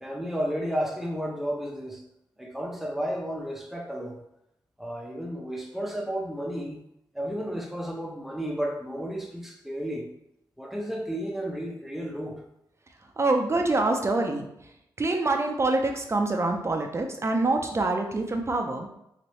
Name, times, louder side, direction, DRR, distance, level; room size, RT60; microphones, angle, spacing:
voice 1, 0.0-2.0 2.4-4.2 4.8-6.8 7.1-10.1 10.6-12.4, equal, 5° right, 1 dB, 0.7 m, -32 dB
voice 2, 13.2-14.5 15.0-18.9, right 2 dB, 35° right, 3 dB, 0.6 m, -25 dB
3.2 x 3.0 x 3.1 m, 0.81 s
cardioid pair, 70°, 8 cm